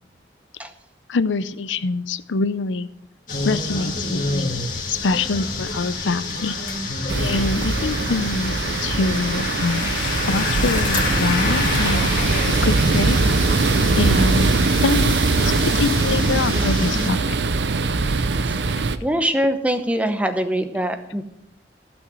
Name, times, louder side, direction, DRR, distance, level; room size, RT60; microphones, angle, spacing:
voice 1, 1.1-2.9 3.4-4.5 4.9-6.6 7.2-8.5 8.8-9.9 10.2-13.2 13.9-17.4, left 3 dB, 90° left, 14 dB, 0.6 m, -25 dB
sound 1, 3.3-17.1, left 2 dB, 45° left, 2.1 m, -27 dB
sound 2, 7.1-19.0, right 3 dB, 75° right, 0.6 m, -21 dB
voice 2, 19.0-21.2, equal, 10° right, 8 dB, 0.8 m, -23 dB
15.5 x 6.2 x 6.3 m, 0.83 s
head